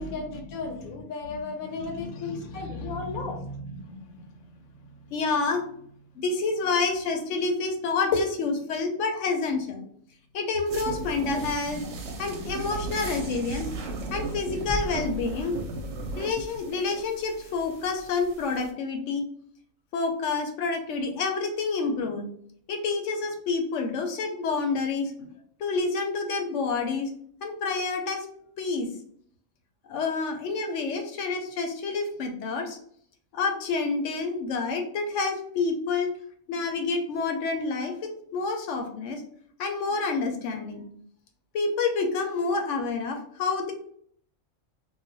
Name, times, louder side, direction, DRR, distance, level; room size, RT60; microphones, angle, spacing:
voice 1, 0.0-3.4 32.2-32.3, left 4 dB, 85° left, 3 dB, 1.2 m, -35 dB
voice 2, 1.7-3.1 3.7-4.1 5.1-5.6 6.2-9.8 10.3-11.8 12.2-13.7 14.1-15.6 16.2-19.3 19.9-22.3 22.7-25.3 25.6-27.1 27.4-28.2 28.6-28.9 29.9-32.8 33.3-36.1 36.5-39.2 39.6-40.8 41.5-43.7, left 4 dB, 65° left, 4 dB, 0.9 m, -28 dB
sound 1, 10.7-18.7, right 2 dB, 70° right, 0.9 m, -36 dB
sound 2, 14.7-16.6 17.0-17.1, equal, 50° right, 0.3 m, -38 dB
2.4 x 2.2 x 3.8 m, 0.63 s
omnidirectional pair, 1.4 m